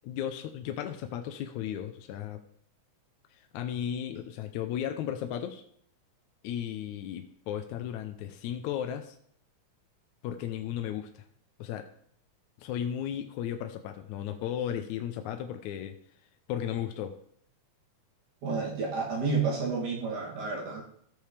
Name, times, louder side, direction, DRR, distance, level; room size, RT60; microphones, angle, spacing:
voice 1, 0.0-2.4 3.3-5.6 6.4-9.2 10.2-11.3 11.6-11.9 12.6-16.0 16.5-17.2, left 10 dB, 80° left, 6 dB, 2.0 m, -35 dB
voice 2, 18.4-20.8, right 4 dB, 80° right, -4 dB, 4.1 m, -30 dB
14.0 x 6.6 x 3.4 m, 0.65 s
omnidirectional pair, 3.5 m